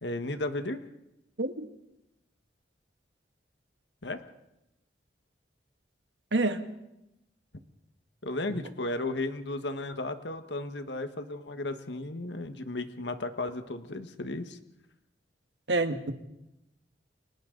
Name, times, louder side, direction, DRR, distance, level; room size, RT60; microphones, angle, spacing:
voice 1, 0.0-0.8 4.0-4.2 8.2-14.6, left 2 dB, 80° left, 1.5 m, -34 dB
voice 2, 6.3-6.6 15.7-16.1, right 2 dB, 85° right, 1.7 m, -27 dB
30.0 x 24.0 x 4.0 m
head